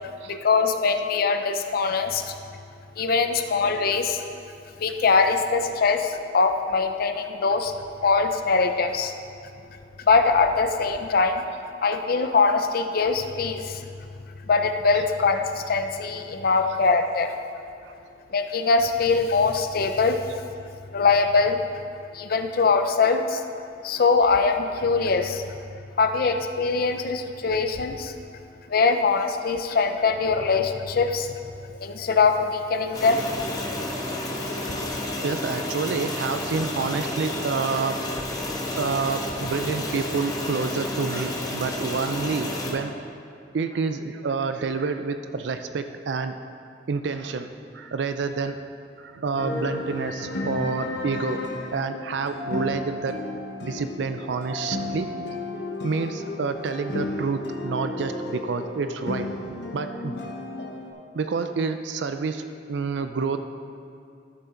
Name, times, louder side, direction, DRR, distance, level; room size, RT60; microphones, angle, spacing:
voice 1, 0.3-2.3 3.0-4.2 4.8-7.7 8.0-9.1 10.1-11.4 11.8-13.8 14.5-17.3 18.3-20.2 20.9-21.6 22.1-23.4 23.8-25.4 26.0-28.1 28.7-31.4 31.8-33.2, left 4 dB, 55° left, 7 dB, 0.5 m, -22 dB
sound 1, 32.9-42.7, left 1 dB, 20° left, 1.2 m, -31 dB
voice 2, 34.7-38.0 38.8-42.9 43.5-46.4 46.9-47.5 47.7-48.6 49.0-51.4 51.7-53.2 53.6-55.1 55.8-60.2 61.1-63.4, right 4 dB, 75° right, 8 dB, 0.4 m, -28 dB
sound 2, 49.4-60.9, left 2 dB, 70° left, 1.0 m, -33 dB
12.5 x 6.9 x 3.8 m, 2.5 s
head